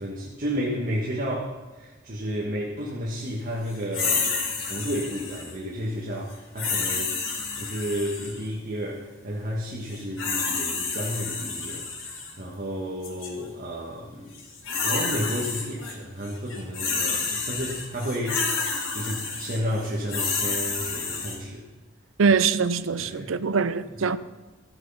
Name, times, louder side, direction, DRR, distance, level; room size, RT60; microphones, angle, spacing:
voice 1, 0.0-7.2 7.6-14.4 14.7-18.7 18.9-21.6 22.3-22.4 23.0-23.7 24.0-24.1, equal, 45° right, 1.7 m, -32 dB
sound 1, 3.9-5.5 6.6-8.4 9.9-12.3 13.0-13.3 14.3-15.9 16.2-21.4, left 4 dB, 85° left, 2.8 m, -29 dB
voice 2, 22.2-24.2, right 5 dB, 85° right, 0.6 m, -23 dB
14.5 x 7.8 x 5.7 m
head